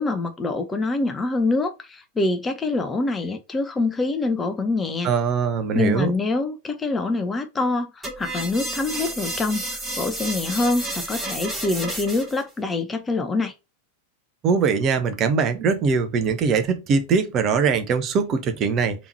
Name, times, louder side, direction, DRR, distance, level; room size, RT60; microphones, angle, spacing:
voice 1, 0.0-5.1 5.7-9.7 10.0-13.5, left 3 dB, 15° left, 0.6 m, -25 dB
voice 2, 5.0-6.1 14.4-18.9, right 5 dB, 30° right, 0.6 m, -21 dB
sound 1, 8.0-12.4, right 1 dB, 10° right, 1.6 m, -31 dB
3.5 x 3.0 x 2.9 m
figure-of-eight pair, 90°, 0 cm